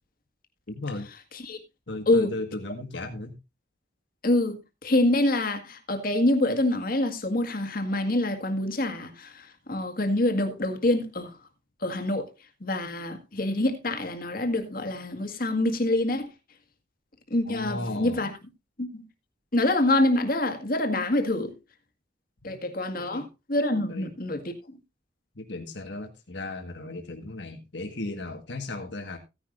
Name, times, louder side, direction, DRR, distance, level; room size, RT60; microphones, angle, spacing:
voice 1, 0.7-1.1 1.9-3.3 17.4-18.2 22.4-22.5 23.0-23.3 23.9-24.1 25.3-29.2, left 2 dB, 70° left, 1.6 m, -35 dB
voice 2, 4.2-11.3 11.8-12.3 12.6-16.3 17.3-18.3 18.8-19.0 19.5-21.5 22.4-24.5, left 1 dB, 50° left, 1.9 m, -26 dB
16.0 x 10.0 x 2.6 m
head